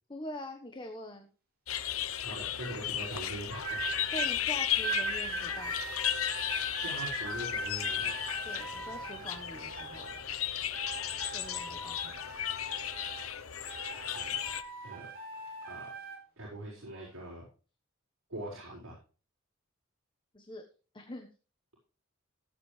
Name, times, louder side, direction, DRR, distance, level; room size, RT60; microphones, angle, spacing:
voice 1, 0.1-1.3 4.1-5.8 8.4-10.2 11.3-12.2 20.3-20.6 20.9-21.3, left 1 dB, 25° left, 4 dB, 1.3 m, -44 dB
sound 1, 1.7-14.6, left 11 dB, 90° left, 1.0 m, -35 dB
voice 2, 2.2-3.8 6.6-8.2 14.0-14.3 14.8-15.1 15.7-15.9 16.4-17.4 18.3-19.0, right 1 dB, 75° right, -7 dB, 6.0 m, -42 dB
sound 2, 3.6-4.3 4.8-10.3 10.7-13.4 13.7-16.2 17.0-17.2, right 3 dB, 50° right, 6.4 m, -40 dB
17.0 x 8.6 x 3.3 m, 0.36 s
head